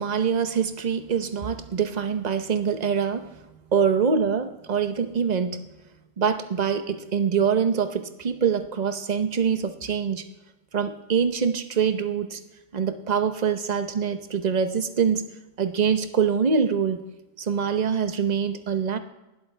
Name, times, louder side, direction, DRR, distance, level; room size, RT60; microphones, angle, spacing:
voice 1, 0.0-3.3 3.7-5.6 6.2-10.2 10.7-12.4 12.7-15.3 15.6-17.0 17.4-19.0, right 6 dB, 35° right, 9 dB, 0.7 m, -24 dB
19.5 x 8.1 x 3.3 m, 1.0 s
omnidirectional pair, 1.6 m